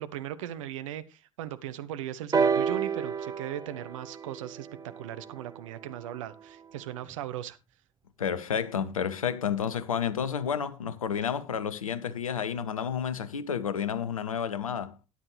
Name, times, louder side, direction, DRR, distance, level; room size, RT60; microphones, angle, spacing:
voice 1, 0.0-7.6, right 12 dB, 65° right, 0.9 m, -38 dB
sound 1, 2.3-6.2 7.1-7.2, right 5 dB, 20° right, 0.7 m, -30 dB
voice 2, 8.2-14.9, left 7 dB, 80° left, 0.8 m, -30 dB
13.0 x 9.9 x 3.2 m
figure-of-eight pair, 60°, 18 cm